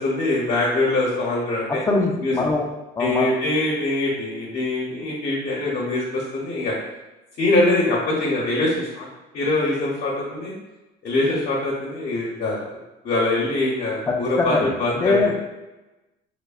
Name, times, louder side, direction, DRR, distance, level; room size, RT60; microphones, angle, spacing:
voice 1, 0.0-1.8 2.2-2.4 3.0-6.7 7.4-9.1 9.3-10.5 11.0-12.6 13.0-15.3, left 2 dB, 50° left, -4 dB, 0.7 m, -23 dB
voice 2, 1.9-2.7 3.0-3.3 14.1-15.3, left 3 dB, 15° left, 2 dB, 0.4 m, -22 dB
2.6 x 2.0 x 2.3 m, 1.0 s
cardioid pair, 100°, 20 cm